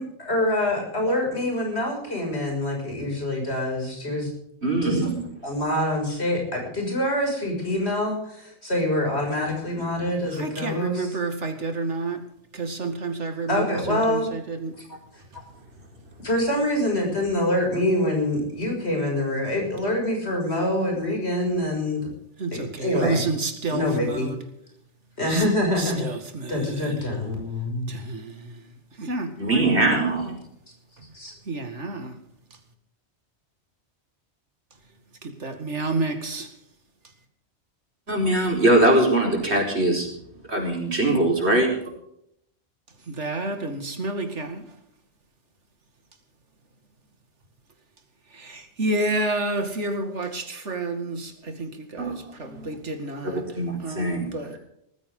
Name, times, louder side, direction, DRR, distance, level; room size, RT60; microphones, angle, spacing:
voice 1, 0.0-4.3 4.8-5.0 5.4-11.1 13.5-14.3 16.2-22.1 22.5-23.2 23.7-24.3 25.2-26.0 26.5-27.4 31.1-31.3, left 1 dB, 65° left, 1 dB, 6.7 m, -25 dB
voice 2, 4.6-5.2 29.4-30.3 38.1-40.1 40.5-41.7 52.0-52.7 53.3-54.3, right 1 dB, 70° right, 0 dB, 5.2 m, -22 dB
voice 3, 10.3-12.2 12.5-14.8 15.3-15.4 22.4-24.4 25.3-25.4 25.8-27.0 28.9-30.4 31.0-31.1 31.5-32.2 35.2-36.5 43.0-44.7 48.3-53.4 53.8-54.6, right 2 dB, 85° right, 7 dB, 2.4 m, -30 dB
19.5 x 15.0 x 3.8 m, 0.75 s
omnidirectional pair, 1.2 m